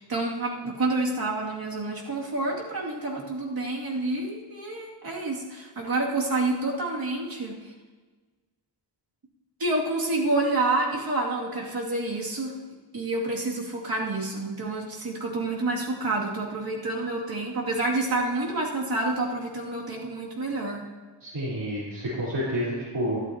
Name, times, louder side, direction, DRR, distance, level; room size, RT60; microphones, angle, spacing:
voice 1, 0.1-7.6 9.6-12.5 12.9-20.9, right 2 dB, 55° right, -3 dB, 2.5 m, -28 dB
voice 2, 21.2-23.2, equal, 75° right, -9 dB, 3.8 m, -29 dB
13.5 x 12.5 x 2.9 m, 1.4 s
wide cardioid pair, 105°, 43 cm